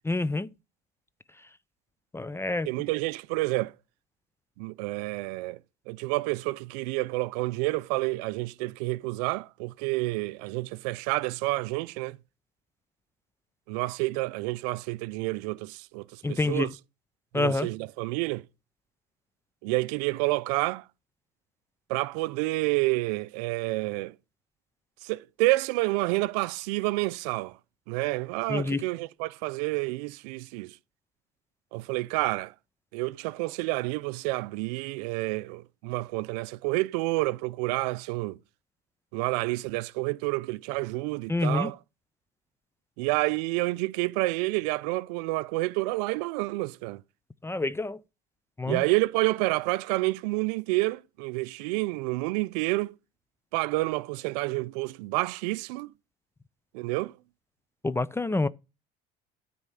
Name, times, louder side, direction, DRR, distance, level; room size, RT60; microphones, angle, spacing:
voice 1, 0.0-0.5 2.1-2.7 16.2-16.7 17.3-17.7 28.5-28.8 41.3-41.7 47.4-48.0 48.6-48.8 57.8-58.5, left 2 dB, 10° left, 0.4 m, -27 dB
voice 2, 2.7-3.7 4.6-5.6 5.9-12.2 13.7-16.7 17.3-18.4 19.6-20.8 21.9-24.1 25.0-27.6 27.9-30.7 31.7-32.5 32.9-38.4 39.1-41.8 43.0-47.0 48.7-52.9 53.5-55.9 56.7-57.1, right 22 dB, 80° right, 0.5 m, -29 dB
9.5 x 4.2 x 7.1 m
supercardioid pair, 85°, 20 cm